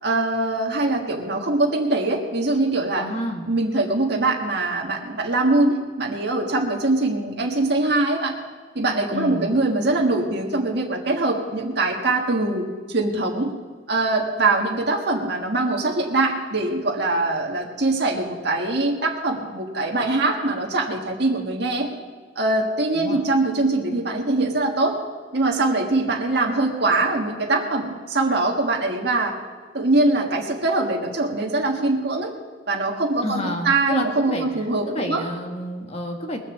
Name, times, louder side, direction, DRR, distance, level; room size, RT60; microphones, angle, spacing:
voice 1, 0.0-3.0 3.5-8.4 8.7-13.5 13.9-21.9 22.3-25.0 25.3-29.4 29.7-32.3 32.7-35.3, right 2 dB, 65° right, 0 dB, 1.7 m, -22 dB
voice 2, 3.0-3.5 9.1-9.5 22.9-23.2 33.2-34.5 34.9-36.4, left 1 dB, 35° left, 3 dB, 1.7 m, -29 dB
20.5 x 7.0 x 7.2 m, 1.5 s
head